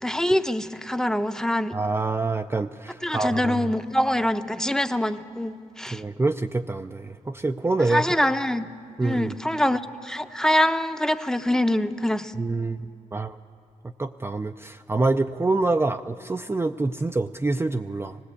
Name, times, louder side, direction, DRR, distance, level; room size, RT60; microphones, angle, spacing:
voice 1, 0.0-1.7 3.0-6.0 7.8-8.7 9.0-12.3, left 1 dB, 5° left, 9 dB, 0.8 m, -24 dB
voice 2, 1.7-3.7 5.9-8.0 9.0-9.4 12.4-13.4 14.0-18.2, right 3 dB, 15° right, 5 dB, 0.5 m, -26 dB
19.0 x 17.0 x 8.3 m, 2.6 s
cardioid pair, 65°, 14 cm